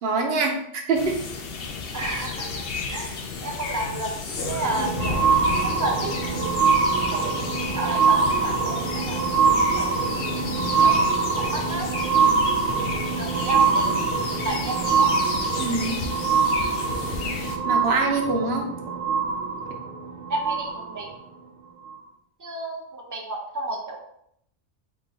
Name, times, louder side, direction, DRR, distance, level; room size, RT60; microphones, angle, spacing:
voice 1, 0.0-0.6 0.9-1.1 15.6-16.0 17.6-18.7, right 3 dB, 60° right, 2 dB, 0.8 m, -24 dB
sound 1, 0.9-17.6, left 4 dB, 60° left, 0.7 m, -32 dB
voice 2, 1.9-2.5 2.9-4.1 4.5-5.2 5.6-6.5 7.1-7.4 7.7-9.2 9.7-9.9 10.8-12.3 13.1-13.9 14.4-15.1 20.3-21.1 22.4-24.0, right 2 dB, 30° right, 1 dB, 0.4 m, -32 dB
sound 2, 4.3-21.1 21.9-22.0, right 5 dB, 85° right, 1.0 m, -24 dB
3.7 x 2.5 x 4.0 m, 0.73 s
omnidirectional pair, 1.2 m